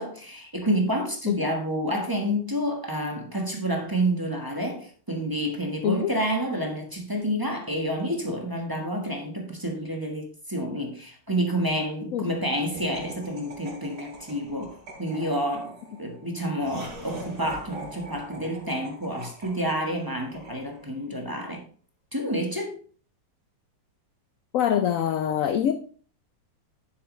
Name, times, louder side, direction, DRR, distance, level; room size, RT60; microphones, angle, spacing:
voice 1, 0.0-15.7 16.0-21.6 22.1-22.8, equal, 15° right, 1.2 m, -29 dB
Laughter, 12.7-21.1, right 2 dB, 75° right, 3.4 m, -43 dB
voice 2, 24.5-25.7, left 9 dB, 70° left, 0.8 m, -24 dB
10.0 x 7.1 x 3.1 m
omnidirectional pair, 1.9 m